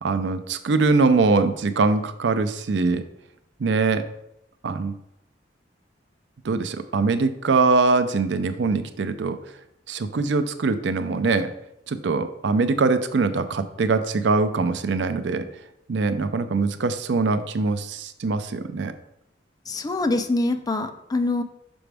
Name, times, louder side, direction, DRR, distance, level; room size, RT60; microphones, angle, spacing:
voice 1, 0.0-3.0 3.6-4.0 4.6-4.9 6.4-9.4 9.9-11.5 11.9-15.4 15.9-18.9, right 3 dB, 70° right, 11 dB, 0.5 m, -22 dB
voice 2, 19.7-21.4, left 2 dB, 20° left, 8 dB, 0.4 m, -24 dB
6.1 x 5.0 x 3.4 m, 0.80 s
head